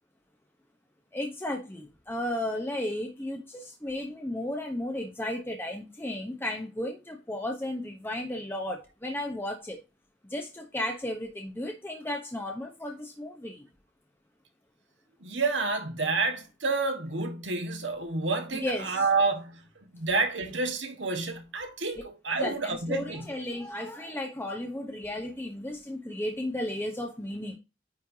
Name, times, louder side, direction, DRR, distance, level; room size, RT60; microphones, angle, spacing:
voice 1, 1.1-9.8 10.3-13.7 18.5-19.0 22.4-27.6, left 1 dB, 10° left, 0.9 m, -34 dB
voice 2, 15.2-19.6 19.9-23.3, right 3 dB, 75° right, 1.7 m, -29 dB
9.5 x 4.4 x 2.8 m
head